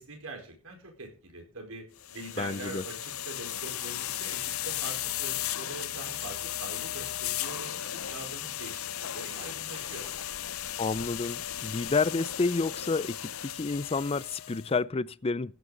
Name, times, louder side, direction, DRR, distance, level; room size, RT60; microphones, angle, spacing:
voice 1, 0.0-1.8 2.1-8.9 9.1-10.1, right 2 dB, 85° right, 4.5 m, -43 dB
sound 1, 2.0-14.7, left 12 dB, 80° left, 0.7 m, -36 dB
voice 2, 2.4-2.8 10.8-15.5, left 4 dB, 25° left, 0.4 m, -30 dB
15.5 x 9.5 x 3.9 m
head